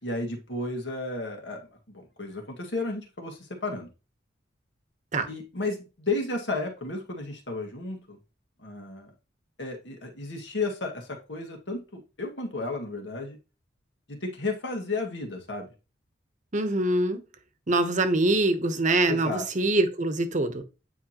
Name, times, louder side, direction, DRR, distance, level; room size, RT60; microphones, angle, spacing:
voice 1, 0.0-3.9 5.3-8.2 8.6-9.1 9.6-13.4 14.1-15.7 19.1-19.5, left 3 dB, 80° left, 1.9 m, -33 dB
voice 2, 16.5-17.2 17.7-20.6, right 2 dB, 45° right, 1.0 m, -24 dB
9.0 x 4.8 x 3.0 m
head